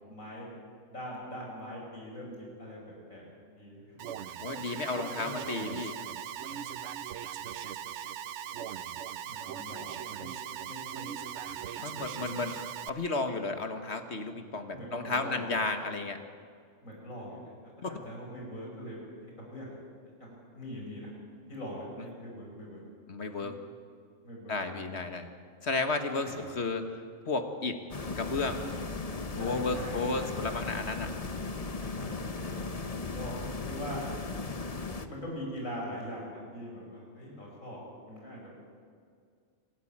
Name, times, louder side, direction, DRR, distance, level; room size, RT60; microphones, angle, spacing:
voice 1, 0.1-0.5 0.9-2.8 3.1-3.2 3.6-3.8 4.7-4.8 5.0-5.6 6.4-6.7 9.2-10.3 10.6-11.1 11.4-11.6 12.2-12.4 14.7-15.5 16.8-19.0 19.4-19.7 20.2-21.1 21.5-22.8 23.4-23.5 24.2-24.6 26.2-26.4 29.4-30.3 32.0-32.7 33.1-33.4 33.6-34.1 35.1-37.8 38.1-38.5, equal, 85° left, -2 dB, 5.9 m, -42 dB
Alarm, 4.0-12.9, right 9 dB, 65° right, 0.9 m, -39 dB
voice 2, 4.4-5.9 11.8-16.2 17.8-17.9 23.1-23.5 24.5-25.3 25.6-27.0 27.3-27.8 28.2-28.6 29.4-31.1, left 3 dB, 55° left, 7 dB, 1.8 m, -33 dB
sound 1, 27.9-35.1, left 3 dB, 30° left, 1.0 m, -37 dB
26.5 x 12.5 x 8.8 m, 2.2 s
omnidirectional pair, 1.4 m